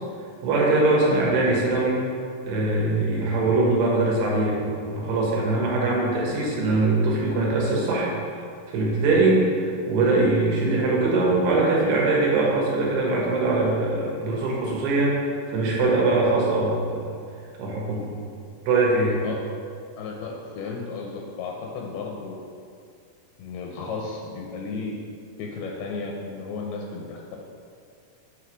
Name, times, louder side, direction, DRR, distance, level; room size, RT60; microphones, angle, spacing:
voice 1, 0.4-2.0 2.5-8.1 8.7-15.2 15.5-17.0 17.6-18.1 18.7-19.2, right 2 dB, 75° right, -4 dB, 3.2 m, -22 dB
voice 2, 19.1-19.4 20.0-22.4 23.4-25.0 25.4-27.4, left 4 dB, 80° left, 0 dB, 2.4 m, -34 dB
7.7 x 3.2 x 6.0 m, 2.3 s
omnidirectional pair, 4.7 m